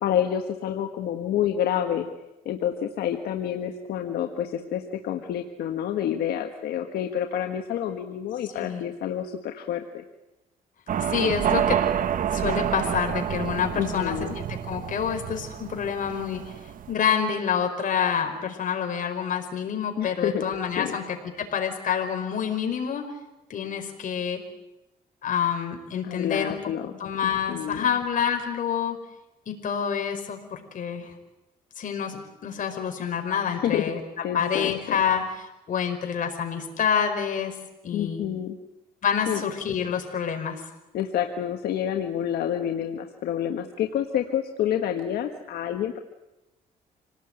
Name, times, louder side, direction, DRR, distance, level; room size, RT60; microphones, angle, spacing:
voice 1, 0.0-2.1 2.4-10.0 13.7-14.3 20.0-20.5 20.8-21.0 26.0-26.9 27.2-27.9 33.5-33.8 34.2-35.0 37.9-38.6 39.3-39.4 40.9-46.0, left 10 dB, 85° left, 4 dB, 1.6 m, -28 dB
sound 1, 10.9-16.9, right 9 dB, 60° right, 1.2 m, -28 dB
voice 2, 11.0-11.8 12.3-14.2 14.5-16.5 16.9-23.0 23.5-24.4 25.2-26.5 27.0-29.0 29.5-31.1 31.8-34.0 34.3-37.5 37.8-38.2 39.0-40.6, left 7 dB, 55° left, 5 dB, 5.0 m, -27 dB
27.0 x 18.5 x 9.1 m, 0.98 s
cardioid pair, 105°, 16 cm